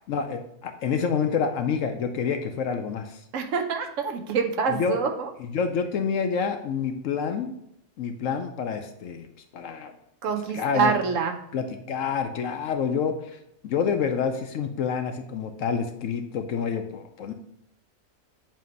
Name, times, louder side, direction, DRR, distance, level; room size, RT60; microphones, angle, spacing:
voice 1, 0.1-3.2 4.7-5.0 5.4-7.5 8.0-9.3 9.5-9.9 10.5-10.9 11.5-13.4 13.6-17.3, left 6 dB, 65° left, 6 dB, 0.9 m, -28 dB
voice 2, 3.3-5.3 10.2-11.4, right 5 dB, 65° right, 5 dB, 0.9 m, -26 dB
7.5 x 2.8 x 5.3 m, 0.76 s
omnidirectional pair, 1.6 m